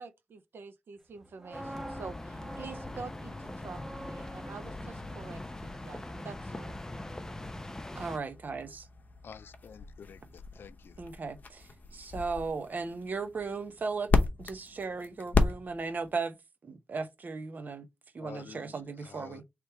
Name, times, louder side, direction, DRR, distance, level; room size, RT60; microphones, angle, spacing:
voice 1, 0.0-6.8, right 5 dB, 90° right, 0.7 m, -47 dB
sound 1, 1.2-7.1 7.4-7.6, right 1 dB, 15° right, 0.7 m, -48 dB
sound 2, 1.5-8.2, left 2 dB, 15° left, 0.5 m, -42 dB
sound 3, 1.8-16.1, left 4 dB, 50° left, 0.8 m, -36 dB
voice 2, 7.9-8.9 11.0-14.1 14.4-16.4 16.6-17.9 18.1-19.4, right 4 dB, 55° right, 0.8 m, -36 dB
voice 3, 9.2-11.1 18.2-19.4, left 6 dB, 90° left, 0.4 m, -50 dB
3.3 x 3.3 x 4.2 m
wide cardioid pair, 125°, 4 cm